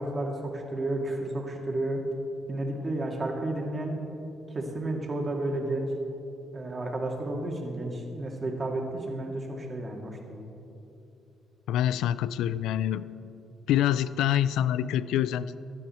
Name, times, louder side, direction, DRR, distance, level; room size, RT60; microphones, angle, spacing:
voice 1, 0.0-2.0 2.5-4.0 4.5-5.9 6.5-10.4, right 2 dB, 30° right, 1 dB, 2.1 m, -32 dB
voice 2, 11.7-13.1 13.7-15.6, left 11 dB, 90° left, 16 dB, 0.3 m, -26 dB
15.5 x 10.5 x 4.3 m, 2.9 s
cardioid pair, 90°, 0 cm